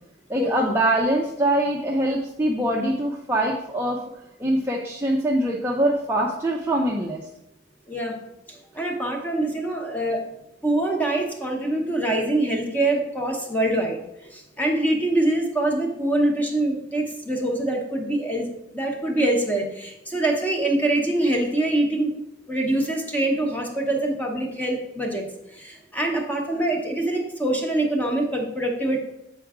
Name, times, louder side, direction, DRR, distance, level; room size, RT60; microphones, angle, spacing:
voice 1, 0.3-4.0 4.4-7.2, right 1 dB, 10° right, -2 dB, 0.5 m, -23 dB
voice 2, 8.5-10.2 10.6-14.0 14.3-18.5 18.7-22.1 22.5-25.3 25.5-29.0, right 1 dB, 10° left, 1 dB, 1.0 m, -24 dB
8.2 x 4.6 x 3.6 m, 0.87 s
head